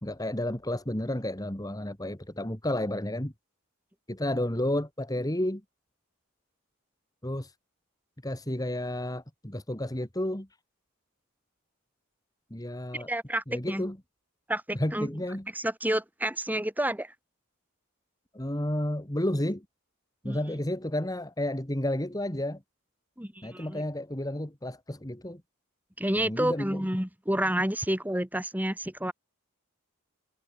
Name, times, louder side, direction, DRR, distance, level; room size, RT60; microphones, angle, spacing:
voice 1, 0.0-3.3 4.1-5.6 7.2-7.5 8.2-10.5 12.5-13.1 13.5-14.0 14.7-15.5 18.3-19.7 20.2-22.6 23.4-25.4 26.2-26.9, left 1 dB, 15° left, 2.2 m, -31 dB
voice 2, 12.9-13.8 14.5-15.1 15.5-17.1 20.2-20.4 23.2-23.8 26.0-29.1, right 1 dB, 10° right, 4.6 m, -30 dB
head